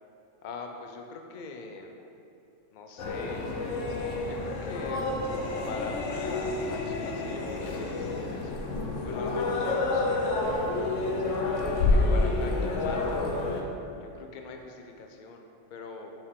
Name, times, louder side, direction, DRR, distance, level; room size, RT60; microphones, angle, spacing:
voice 1, 0.4-2.0 2.7-3.5 4.2-5.0 5.7-10.8 11.9-13.3 14.0-16.1, left 4 dB, 50° left, 3 dB, 0.6 m, -42 dB
sound 1, 3.0-13.6, left 2 dB, 80° left, 1.0 m, -29 dB
6.5 x 5.5 x 3.7 m, 2.8 s
omnidirectional pair, 1.3 m